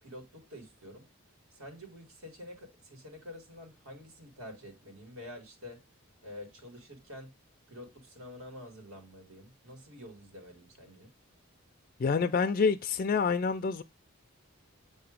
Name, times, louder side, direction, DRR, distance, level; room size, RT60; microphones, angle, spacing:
voice 1, 0.0-1.1 1.5-5.8 6.2-7.3 7.7-11.1, left 1 dB, 80° right, 2.0 m, -48 dB
voice 2, 12.0-13.8, left 5 dB, 40° left, 0.3 m, -27 dB
7.4 x 2.9 x 4.9 m
head